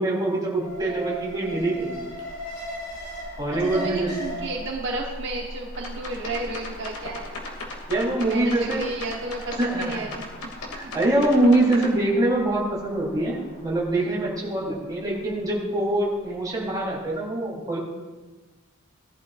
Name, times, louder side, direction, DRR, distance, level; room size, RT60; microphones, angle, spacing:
voice 1, 0.0-2.0 3.4-4.1 7.9-8.9 9.6-10.1 10.7-17.8, right 1 dB, 15° right, -5 dB, 3.6 m, -24 dB
Alarm, 0.6-16.7 17.0-17.1, equal, 50° left, 3.7 m, -39 dB
voice 2, 3.6-7.5 8.2-10.2 14.5-14.7, right 2 dB, 55° right, -2 dB, 1.2 m, -32 dB
sound 1, 5.7-11.9, left 2 dB, 90° left, 2.4 m, -37 dB
19.0 x 11.5 x 2.5 m, 1.2 s
head